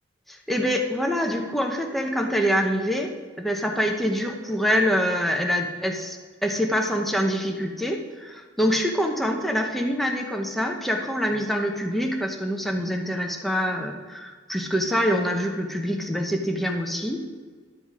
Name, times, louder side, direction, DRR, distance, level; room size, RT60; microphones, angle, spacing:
voice 1, 0.3-3.1 3.4-17.2, equal, ahead, 2 dB, 0.9 m, -25 dB
12.0 x 7.9 x 4.8 m, 1.5 s
head